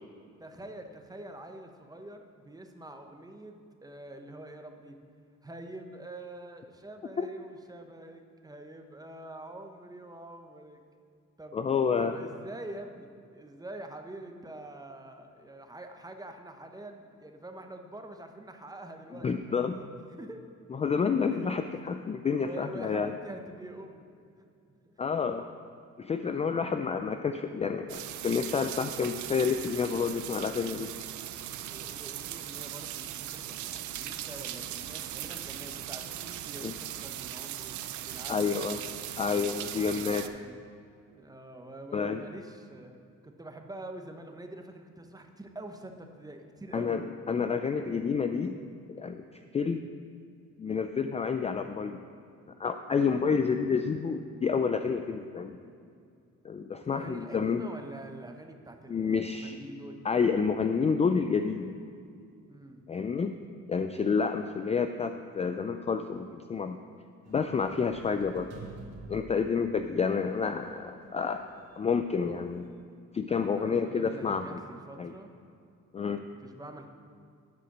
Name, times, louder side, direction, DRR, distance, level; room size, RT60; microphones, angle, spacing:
voice 1, 0.4-5.0 5.4-10.8 11.4-11.6 12.0-19.9 20.2-20.4 21.3-21.5 22.4-24.0 24.8-25.2 26.2-26.3 31.6-39.0 39.7-39.9 40.2-40.6 41.1-43.0 43.2-47.0 52.9-53.1 56.9-60.0 62.5-62.9 69.3-69.5 73.5-75.3 76.4-76.9, right 1 dB, 10° right, 5 dB, 0.9 m, -46 dB
voice 2, 11.5-12.2 19.2-19.8 20.8-23.1 25.0-25.4 26.0-30.9 36.6-36.7 38.3-38.8 39.2-40.3 41.9-42.2 46.7-48.6 48.9-49.2 49.5-49.8 50.6-52.0 52.6-55.6 56.4-57.6 58.9-59.6 60.0-61.8 62.9-63.3 63.7-66.8 67.3-68.5 69.1-71.4 71.8-72.7 73.1-74.6 75.0-75.1 75.9-76.2, left 5 dB, 20° left, 7 dB, 0.3 m, -29 dB
sound 1, 27.9-40.3, right 12 dB, 70° right, 0.5 m, -39 dB
sound 2, 67.2-72.7, right 3 dB, 55° right, 2.2 m, -50 dB
10.0 x 5.0 x 6.0 m, 2.4 s
cardioid pair, 90°, 30 cm